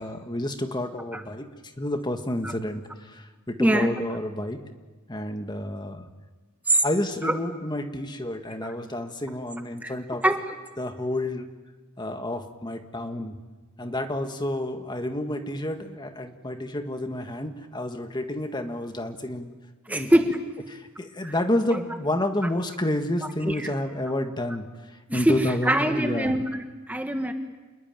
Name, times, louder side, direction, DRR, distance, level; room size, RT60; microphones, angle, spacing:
voice 1, 0.0-4.6 5.1-6.1 6.8-10.2 10.8-11.5 12.0-13.4 13.8-19.5 19.9-20.1 20.7-26.3, left 1 dB, 20° left, 7 dB, 1.7 m, -30 dB
voice 2, 3.6-3.9 6.7-6.8 7.2-7.4 8.6-8.7 9.8-9.9 10.2-10.5 19.9-20.4 21.2-21.3 21.7-21.8 23.5-23.7 25.1-27.3, right 1 dB, 10° right, 5 dB, 1.3 m, -23 dB
28.0 x 21.0 x 9.1 m, 1.3 s
head